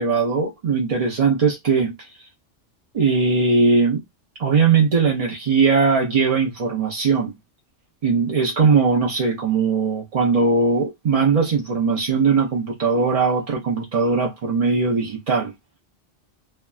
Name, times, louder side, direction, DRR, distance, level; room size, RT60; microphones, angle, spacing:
voice 1, 0.0-2.1 2.9-4.0 4.4-7.3 8.0-15.5, right 4 dB, 50° right, 0.4 m, -19 dB
2.7 x 2.2 x 2.3 m
omnidirectional pair, 1.3 m